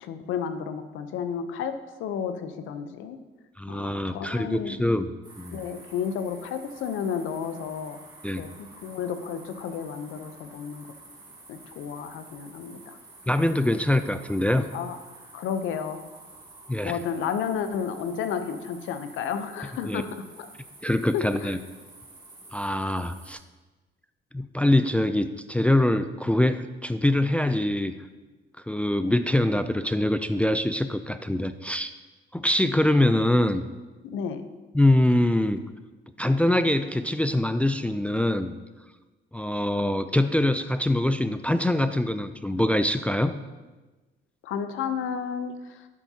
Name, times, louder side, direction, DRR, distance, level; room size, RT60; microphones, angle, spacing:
voice 1, 0.0-3.2 3.7-4.8 5.5-8.0 8.4-10.9 11.5-13.0 14.7-15.0 15.3-16.0 16.8-20.5 21.1-21.6 34.0-34.4 44.4-45.9, left 7 dB, 85° left, 9 dB, 0.7 m, -32 dB
voice 2, 3.6-5.1 5.4-5.6 8.2-8.4 13.3-14.7 16.7-17.0 19.9-20.0 20.8-21.6 22.5-23.4 24.3-27.9 28.7-31.9 32.3-33.6 34.7-35.6 36.2-38.5 39.3-43.3, left 1 dB, 5° left, 10 dB, 0.3 m, -24 dB
sound 1, 5.2-23.3, right 2 dB, 20° right, 2.0 m, -49 dB
10.5 x 7.2 x 2.8 m, 1.2 s
cardioid pair, 90°, 20 cm